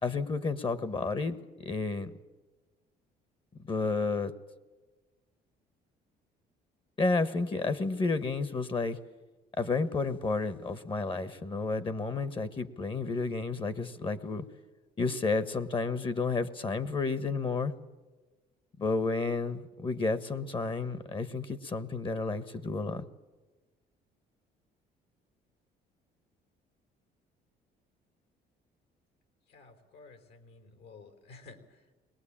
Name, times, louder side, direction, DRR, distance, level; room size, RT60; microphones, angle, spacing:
voice 1, 0.0-1.4 1.6-2.1 3.7-4.3 7.0-9.0 9.6-14.5 15.0-17.7 18.8-23.1, left 3 dB, 30° left, 14 dB, 1.4 m, -31 dB
voice 2, 29.4-31.9, left 4 dB, 70° left, 6 dB, 4.1 m, -53 dB
22.0 x 20.0 x 8.8 m, 1.2 s
cardioid pair, 110°, 17 cm